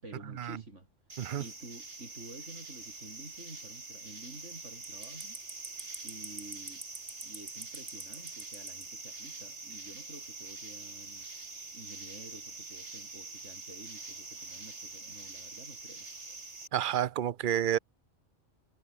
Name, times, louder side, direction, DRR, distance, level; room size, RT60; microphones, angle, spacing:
voice 1, 0.0-0.9 1.4-5.4 6.0-6.8 7.2-11.3 11.7-16.1, right 2 dB, 85° right, 6.1 m, -50 dB
sound 1, 1.1-16.7, right 3 dB, 70° right, 3.3 m, -44 dB
voice 2, 16.7-17.8, right 10 dB, 55° right, 0.7 m, -30 dB
omnidirectional pair, 1.2 m